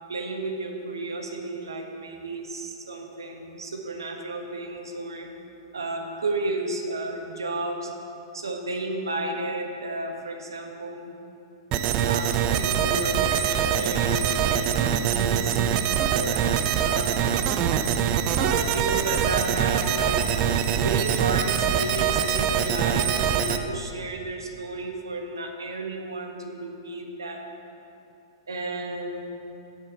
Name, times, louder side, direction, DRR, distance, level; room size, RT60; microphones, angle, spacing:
voice 1, 0.1-5.3 5.7-7.9 8.3-11.1 12.0-15.6 16.1-17.5 18.3-20.3 20.7-27.4 28.5-29.3, right 2 dB, 75° right, 2 dB, 1.5 m, -32 dB
sound 1, 11.7-23.6, right 8 dB, 35° right, 0.6 m, -24 dB
10.0 x 7.7 x 6.6 m, 2.7 s
figure-of-eight pair, 105°, 2 cm